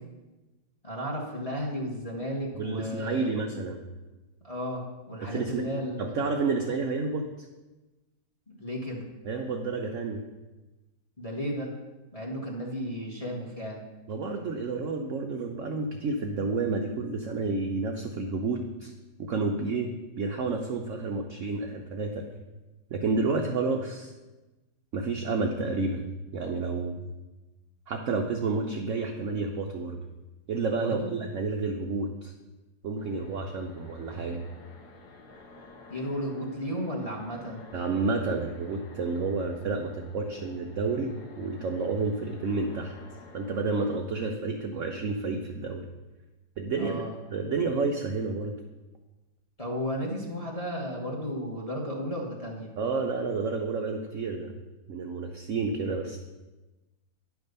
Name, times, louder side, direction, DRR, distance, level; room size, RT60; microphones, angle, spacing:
voice 1, 0.8-3.3 4.4-6.1 8.5-9.0 11.2-11.7 12.1-13.8 30.7-31.1 35.9-37.6 46.8-47.2 49.6-52.7, equal, 20° left, -2 dB, 1.2 m, -34 dB
voice 2, 2.5-3.8 5.2-5.6 6.0-7.2 9.3-10.2 14.1-18.9 19.2-22.2 22.9-24.1 24.9-26.0 26.3-27.0 27.9-30.0 30.5-32.3 32.8-34.4 37.7-42.9 43.3-45.8 46.6-47.1 47.3-48.5 52.8-54.5 54.9-56.2, right 3 dB, 75° right, 2 dB, 0.7 m, -30 dB
sound 1, 33.0-44.0, left 3 dB, 65° left, 1.4 m, -51 dB
10.0 x 3.6 x 6.6 m, 1.1 s
omnidirectional pair, 2.0 m